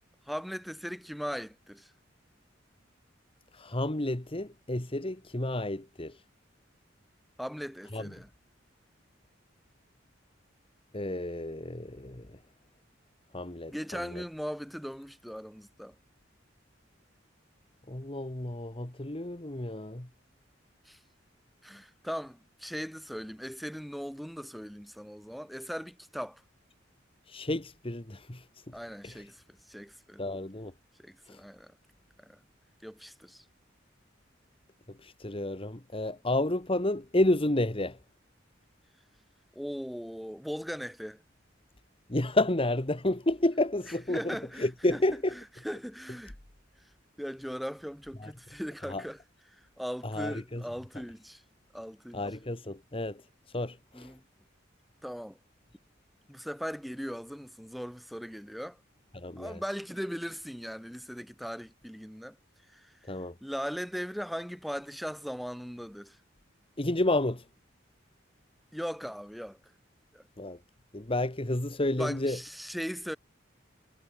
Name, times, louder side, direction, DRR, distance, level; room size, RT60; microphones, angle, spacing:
voice 1, 0.3-1.9 7.4-8.3 13.7-15.9 20.9-21.0 21.6-26.4 28.7-30.2 31.0-31.7 32.2-32.4 32.8-33.4 39.5-41.2 43.9-45.0 45.3-46.3 47.2-49.2 49.8-51.4 51.7-52.2 53.9-54.2 55.0-55.4 56.3-58.8 59.4-62.4 62.7-62.9 63.4-66.2 68.7-69.6 70.1-70.2 72.0-73.2, equal, ahead, 4.1 m, -39 dB
voice 2, 3.5-6.2 7.9-8.1 10.9-12.4 13.3-14.2 17.9-20.1 27.3-28.4 29.0-29.2 30.2-30.7 31.3-31.4 35.0-38.0 42.1-45.3 48.2-48.3 48.9-49.0 50.0-50.6 52.1-53.2 53.5-54.1 59.1-59.6 63.1-63.3 66.8-67.4 70.4-70.6 70.9-72.4, left 1 dB, 30° left, 1.6 m, -31 dB
head